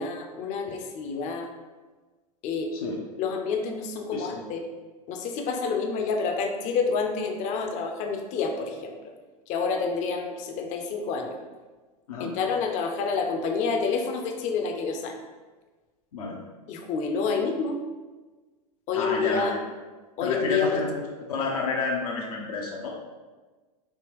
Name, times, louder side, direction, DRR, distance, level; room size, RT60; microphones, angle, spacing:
voice 1, 0.0-1.5 2.4-2.7 3.2-4.6 5.1-9.0 9.5-11.4 12.2-15.2 16.7-17.8 18.9-19.5 20.2-20.8, left 5 dB, 40° left, 3 dB, 0.5 m, -28 dB
voice 2, 4.1-4.5 12.1-12.3 16.1-16.4 18.9-19.6 20.2-21.0 21.3-22.9, left 3 dB, 75° left, -2 dB, 0.6 m, -30 dB
3.4 x 2.8 x 3.0 m, 1.3 s
hypercardioid pair, 100°, 20 cm